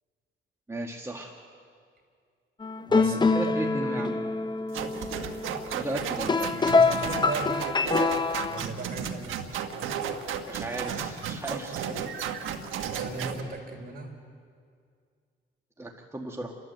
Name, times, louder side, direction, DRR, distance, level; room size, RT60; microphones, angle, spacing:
voice 1, 0.7-1.3 3.2-4.1 5.7-6.5 10.5-12.0 15.8-16.5, right 1 dB, 15° right, 1 dB, 1.8 m, -35 dB
sound 1, 2.6-8.6, left 4 dB, 20° left, 0.7 m, -25 dB
voice 2, 2.9-4.0 6.5-7.8 8.5-9.4 12.8-14.1, right 3 dB, 50° right, 3 dB, 4.2 m, -37 dB
sound 2, 4.7-13.4, right 7 dB, 85° right, 1.5 m, -33 dB
29.5 x 12.5 x 8.0 m, 2.2 s
cardioid pair, 90°, 20 cm